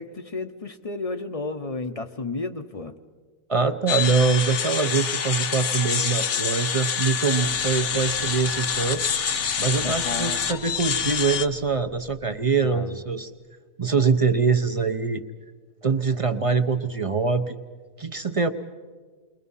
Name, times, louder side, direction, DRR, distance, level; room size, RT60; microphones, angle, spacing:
voice 1, 0.0-2.9 9.8-10.4 12.6-13.0, left 3 dB, 35° left, 8 dB, 0.6 m, -32 dB
voice 2, 3.5-9.0 9.6-13.3 13.8-15.2 15.8-17.6 18.0-18.5, right 5 dB, 40° right, 9 dB, 0.5 m, -23 dB
sound 1, 3.9-11.5, left 7 dB, 55° left, 1.1 m, -26 dB
sound 2, 7.4-13.4, right 4 dB, 85° right, 1.4 m, -44 dB
29.5 x 22.5 x 5.5 m, 1.5 s
omnidirectional pair, 1.6 m